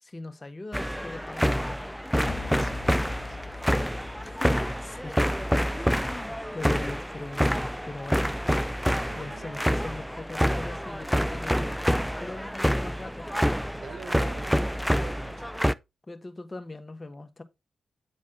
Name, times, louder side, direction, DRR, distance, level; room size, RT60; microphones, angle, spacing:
voice 1, 0.0-1.9 3.5-3.7 4.2-5.2 5.7-8.4 8.8-13.3 16.1-17.4, left 2 dB, 30° left, 1.4 m, -41 dB
sound 1, 0.7-15.7, equal, ahead, 0.4 m, -27 dB
sound 2, 2.3-7.4, left 5 dB, 65° left, 0.6 m, -44 dB
voice 2, 2.6-3.6 9.1-9.8 13.7-14.6 15.0-15.5, right 5 dB, 65° right, 0.9 m, -45 dB
9.0 x 4.1 x 3.9 m
supercardioid pair, 40°, 0 cm